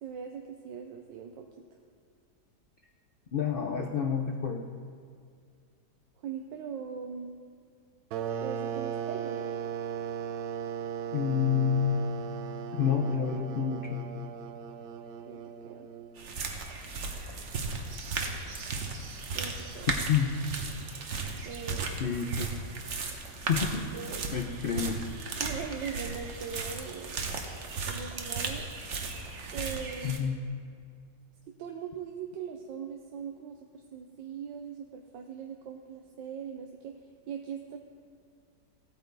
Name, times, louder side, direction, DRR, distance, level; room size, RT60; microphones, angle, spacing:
voice 1, 0.0-1.5 6.2-7.4 8.4-9.5 15.3-15.9 19.3-19.9 21.4-22.1 23.9-24.2 25.4-27.2 27.9-28.7 29.5-30.4 31.6-37.8, right 7 dB, 85° right, 3 dB, 1.4 m, -40 dB
voice 2, 3.3-4.7 11.1-12.0 12.7-14.0 20.1-20.3 22.0-22.5 23.5-23.9 24.3-25.0 30.0-30.4, left 7 dB, 75° left, 3 dB, 0.5 m, -28 dB
sound 1, 8.1-16.5, right 7 dB, 70° right, 1.0 m, -37 dB
sound 2, 16.2-30.2, right 4 dB, 45° right, 1.1 m, -36 dB
16.0 x 8.9 x 3.9 m, 2.2 s
omnidirectional pair, 1.9 m